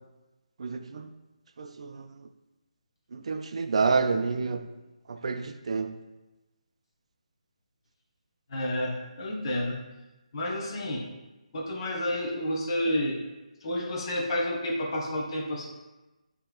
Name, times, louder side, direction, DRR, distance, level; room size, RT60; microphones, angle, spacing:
voice 1, 0.6-1.1 1.6-2.1 3.1-4.7 5.1-6.0, right 4 dB, 55° right, 9 dB, 0.3 m, -29 dB
voice 2, 8.5-9.8 10.3-11.1 11.5-13.2 13.6-15.7, left 1 dB, 45° left, -1 dB, 0.8 m, -30 dB
7.4 x 2.8 x 2.3 m, 1.1 s
figure-of-eight pair, 155°, 4 cm